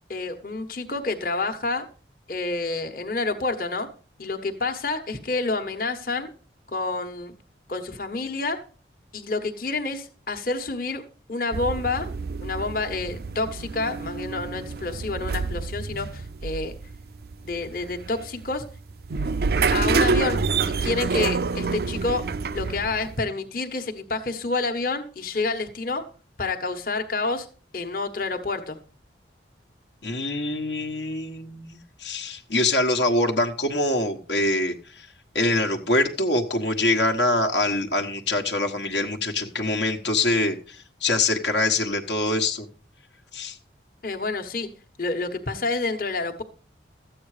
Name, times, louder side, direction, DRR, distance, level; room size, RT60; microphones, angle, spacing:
voice 1, 0.1-1.8 2.3-3.9 4.2-6.3 6.7-7.3 7.7-8.6 9.1-11.0 11.3-12.1 12.4-16.7 17.4-18.6 19.7-20.4 20.7-22.2 22.5-26.0 26.4-27.5 27.7-28.8 44.0-44.7 45.0-46.4, left 3 dB, 50° left, 4 dB, 1.3 m, -28 dB
sound 1, 11.5-23.2, right 4 dB, 55° right, 0.5 m, -27 dB
voice 2, 30.0-35.1 35.3-42.7 43.3-43.6, left 2 dB, 65° left, 3 dB, 1.2 m, -24 dB
13.5 x 8.6 x 4.9 m, 0.38 s
head